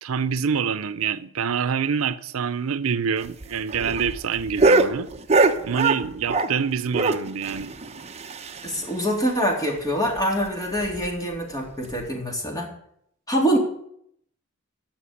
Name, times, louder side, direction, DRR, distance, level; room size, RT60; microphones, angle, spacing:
voice 1, 0.0-5.1 5.6-7.8, right 6 dB, 80° right, 0.6 m, -26 dB
sound 1, 3.2-6.6 6.9-8.9 9.2-9.3 9.6-9.7 10.1-10.2 10.8-11.1 11.9-12.0, right 3 dB, 30° right, 1.0 m, -23 dB
voice 2, 8.6-12.7 13.3-13.6, equal, 20° left, 3.5 m, -25 dB
16.0 x 5.9 x 9.8 m
head